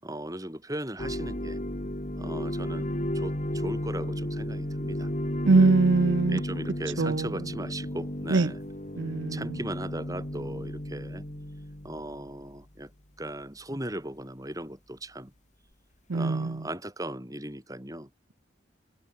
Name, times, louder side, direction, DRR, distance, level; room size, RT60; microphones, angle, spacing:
voice 1, 0.0-1.6 2.2-5.1 5.6-5.7 6.3-8.6 9.3-11.2 11.8-12.9 13.2-15.3 16.1-18.1, right 1 dB, 15° right, 7.8 m, -38 dB
sound 1, 1.0-12.5, left 1 dB, 35° left, 2.7 m, -33 dB
voice 2, 5.5-6.4 7.0-7.3 8.3-8.5 9.0-9.5 16.1-16.6, right 3 dB, 70° right, 0.6 m, -22 dB
head